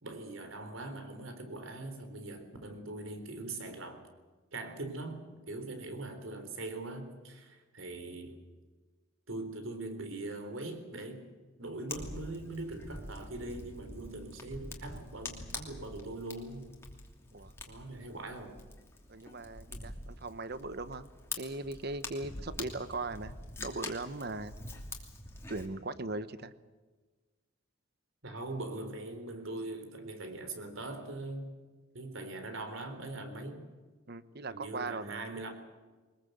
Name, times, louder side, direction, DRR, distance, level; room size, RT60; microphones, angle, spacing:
voice 1, 0.0-4.1 4.5-8.4 9.3-11.3 11.6-16.7 17.7-18.6 28.2-31.5 31.9-33.7 34.5-35.5, right 2 dB, 70° right, 8 dB, 3.7 m, -41 dB
Fire, 11.9-25.7, left 2 dB, 10° left, 2.8 m, -45 dB
voice 2, 19.1-21.1 21.4-23.3 23.6-24.5 25.5-26.5 34.1-35.3, right 2 dB, 50° right, 13 dB, 1.1 m, -39 dB
23.5 x 20.5 x 8.0 m, 1.3 s
head